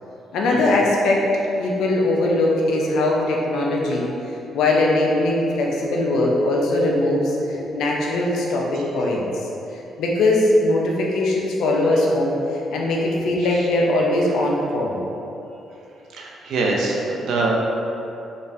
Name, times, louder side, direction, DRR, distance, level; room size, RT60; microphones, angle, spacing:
voice 1, 0.3-1.3 1.6-4.1 4.5-9.3 10.0-12.4 12.7-15.0, left 2 dB, 80° left, -2 dB, 0.6 m, -20 dB
voice 2, 16.1-17.5, right 3 dB, 75° right, -2 dB, 0.6 m, -24 dB
3.8 x 3.4 x 2.7 m, 2.9 s
cardioid pair, 90°, 0 cm